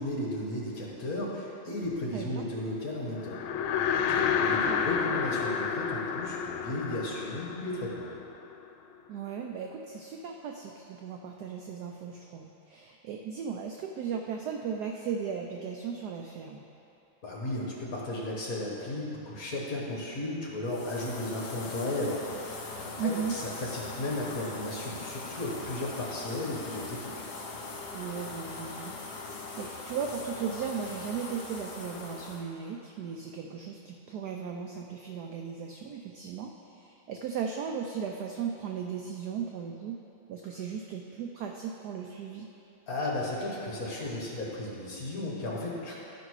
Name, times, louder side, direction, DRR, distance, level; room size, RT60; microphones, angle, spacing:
voice 1, 0.0-3.4 3.9-8.1 17.2-27.1 42.9-45.9, left 1 dB, 50° left, -4 dB, 1.7 m, -35 dB
voice 2, 2.1-2.5 4.5-4.8 9.1-16.6 23.0-23.4 27.9-40.0 40.3-42.5, right 6 dB, 80° right, 2 dB, 0.9 m, -36 dB
sound 1, 3.2-8.6, left 7 dB, 85° left, 1.4 m, -30 dB
sound 2, 20.7-32.4, left 3 dB, 70° left, 1.8 m, -41 dB
12.0 x 5.2 x 4.7 m, 2.9 s
omnidirectional pair, 2.2 m